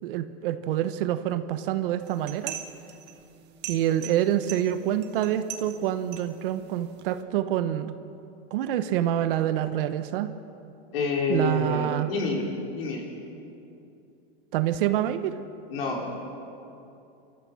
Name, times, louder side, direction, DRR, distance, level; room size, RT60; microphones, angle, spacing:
voice 1, 0.0-2.5 3.7-7.9 8.5-10.3 11.3-12.1 14.5-15.4, right 12 dB, 65° right, 11 dB, 1.1 m, -26 dB
sound 1, 2.0-7.2, right 9 dB, 35° right, 1.6 m, -42 dB
voice 2, 10.9-12.5 12.7-13.0 15.7-16.1, left 3 dB, 80° left, 0 dB, 4.8 m, -27 dB
25.5 x 14.0 x 7.2 m, 2.7 s
supercardioid pair, 145°, 29 cm